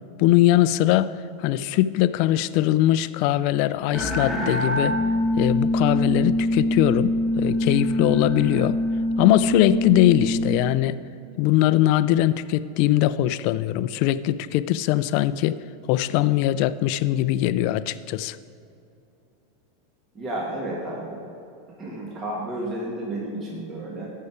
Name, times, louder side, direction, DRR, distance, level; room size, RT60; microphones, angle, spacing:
voice 1, 0.2-1.1 1.4-5.0 5.4-8.8 9.2-11.0 11.4-15.6 15.9-18.4, left 14 dB, 55° left, 15 dB, 0.4 m, -21 dB
sound 1, 3.9-10.6, left 1 dB, 10° left, 1.6 m, -24 dB
voice 2, 20.1-21.2 21.8-24.1, right 1 dB, 30° right, -3 dB, 2.0 m, -31 dB
14.5 x 5.6 x 4.8 m, 2.7 s
hypercardioid pair, 110°, 0 cm